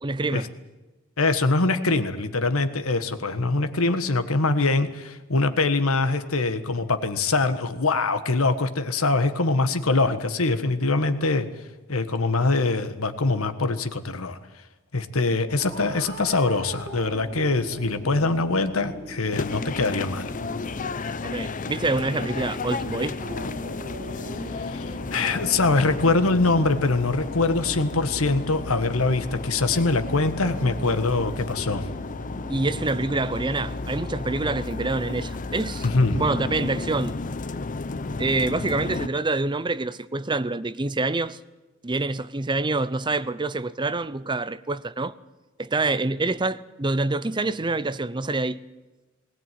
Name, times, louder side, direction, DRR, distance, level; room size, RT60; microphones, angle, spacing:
voice 1, 0.0-0.5 21.2-23.2 32.5-35.9 36.1-37.2 38.2-41.4 41.8-45.1 45.6-48.6, right 3 dB, 20° right, 0.6 m, -26 dB
voice 2, 1.2-11.5 11.9-14.4 14.9-20.3 24.5-31.9 35.8-36.2, left 3 dB, 85° left, 1.5 m, -23 dB
sound 1, 15.5-34.2, equal, 70° right, 6.3 m, -42 dB
sound 2, 19.3-39.1, left 3 dB, 40° left, 0.7 m, -33 dB
20.0 x 18.0 x 9.3 m
head